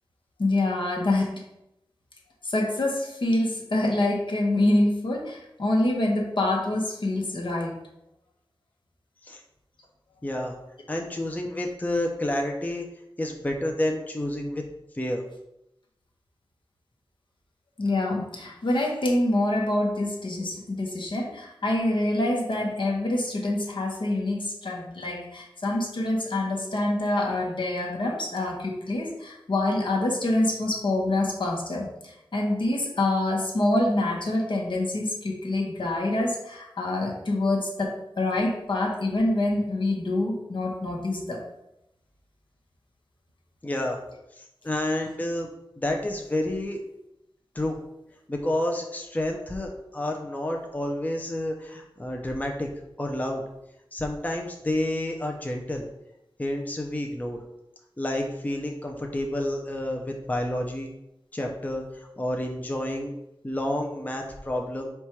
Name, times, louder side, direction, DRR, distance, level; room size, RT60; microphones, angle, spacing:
voice 1, 0.4-1.3 2.4-7.8 17.8-41.4, left 1 dB, 65° left, 0 dB, 0.9 m, -26 dB
voice 2, 10.2-10.6 10.9-12.9 13.2-14.6 14.9-15.2 43.6-44.0 44.4-45.5 45.8-46.8 47.5-47.8 48.3-52.7 53.0-53.4 53.9-55.9 56.4-57.4 58.0-60.9 61.3-63.1 63.4-64.9, left 1 dB, 15° left, 1 dB, 0.5 m, -29 dB
4.3 x 2.3 x 4.4 m, 0.86 s
wide cardioid pair, 55°, 9 cm